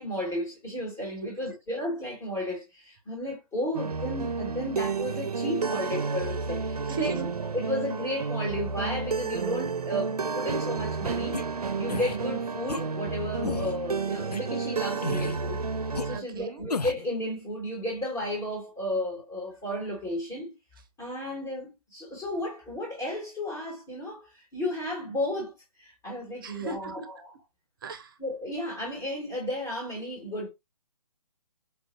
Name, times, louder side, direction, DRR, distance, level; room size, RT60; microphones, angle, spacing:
voice 1, 0.0-11.4 11.8-15.6 16.0-20.5 21.0-27.3 28.2-30.5, left 1 dB, 15° left, 1.3 m, -33 dB
sound 1, 3.7-16.2, right 4 dB, 75° right, 0.5 m, -31 dB
voice 2, 6.9-7.2 11.9-12.0 16.1-16.6 26.4-26.9 27.8-28.2, right 4 dB, 35° right, 0.7 m, -36 dB
sound 2, 11.3-11.4 11.9-12.2 12.7-12.8 13.4-13.8 14.3-14.4 15.0-15.4 15.9-16.1 16.7-17.1, left 4 dB, 90° left, 0.5 m, -32 dB
4.4 x 2.5 x 2.5 m
figure-of-eight pair, 140°, 20 cm